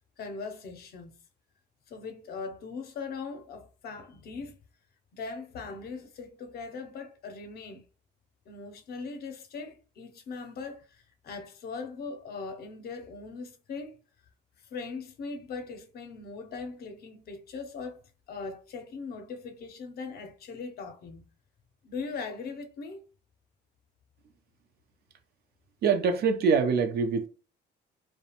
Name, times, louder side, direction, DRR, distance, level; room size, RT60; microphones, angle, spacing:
voice 1, 0.2-1.2 1.9-4.6 5.1-7.8 8.5-14.0 14.7-18.0 18.3-21.2 21.8-23.0, left 4 dB, 55° left, 0.6 m, -40 dB
voice 2, 25.8-27.3, right 5 dB, 60° right, 0.5 m, -24 dB
2.4 x 2.1 x 2.8 m
cardioid pair, 105°, 19 cm